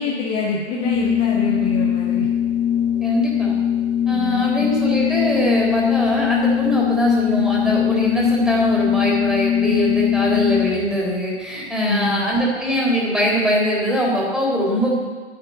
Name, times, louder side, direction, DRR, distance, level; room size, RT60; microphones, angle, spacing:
voice 1, 0.0-2.3 4.1-4.7 11.9-12.2, left 4 dB, 20° left, -3 dB, 1.7 m, -26 dB
Organ, 0.7-11.0, left 10 dB, 20° right, 2.5 m, -21 dB
voice 2, 3.0-3.6 4.1-15.0, equal, ahead, -4 dB, 3.7 m, -22 dB
10.0 x 8.8 x 9.4 m, 1.4 s
figure-of-eight pair, 115°, 36 cm